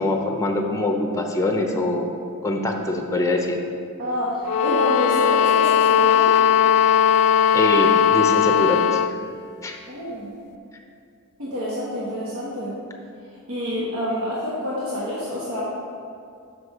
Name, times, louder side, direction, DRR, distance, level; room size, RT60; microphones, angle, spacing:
voice 1, 0.0-2.1 2.4-3.6 7.5-9.0 9.6-9.8, left 2 dB, 15° left, 3 dB, 0.6 m, -23 dB
voice 2, 4.0-6.4 9.9-10.3 11.4-12.8 13.5-15.6, left 1 dB, 75° right, -7 dB, 1.4 m, -27 dB
sound 1, 4.4-9.2, left 8 dB, 90° left, 0.3 m, -18 dB
6.0 x 4.8 x 6.5 m, 2.4 s
head